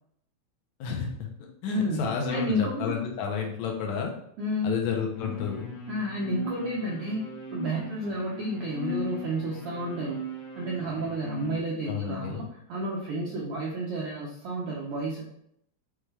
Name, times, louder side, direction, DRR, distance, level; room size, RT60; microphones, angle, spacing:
voice 1, 0.8-4.1 4.6-5.7 11.9-12.5, left 6 dB, 80° left, 1 dB, 2.0 m, -31 dB
voice 2, 1.7-2.9 4.4-4.8 5.9-10.2 10.6-15.3, right 1 dB, 80° right, -4 dB, 1.3 m, -31 dB
sound 1, 5.1-11.6, left 2 dB, 65° left, 2.0 m, -38 dB
5.8 x 2.3 x 3.2 m, 0.73 s
omnidirectional pair, 3.3 m